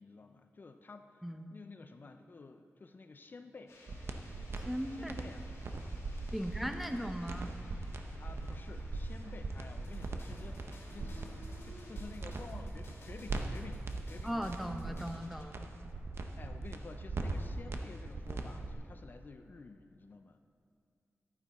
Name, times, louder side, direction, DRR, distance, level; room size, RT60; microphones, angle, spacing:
voice 1, 0.0-1.2 1.5-3.8 5.0-5.5 6.3-6.5 8.2-11.3 11.6-15.1 16.4-20.4, left 3 dB, 40° left, 7 dB, 0.4 m, -51 dB
sound 1, 3.7-11.9, left 1 dB, 90° left, 2.7 m, -57 dB
sound 2, 3.9-18.7, right 3 dB, 55° right, 0.8 m, -40 dB
voice 2, 4.7-5.1 6.3-7.5 14.2-15.6, equal, 5° right, 6 dB, 0.6 m, -38 dB
sound 3, 9.8-15.5, left 2 dB, 60° left, 2.1 m, -56 dB
11.5 x 9.4 x 4.1 m, 2.3 s
wide cardioid pair, 130°, 5 cm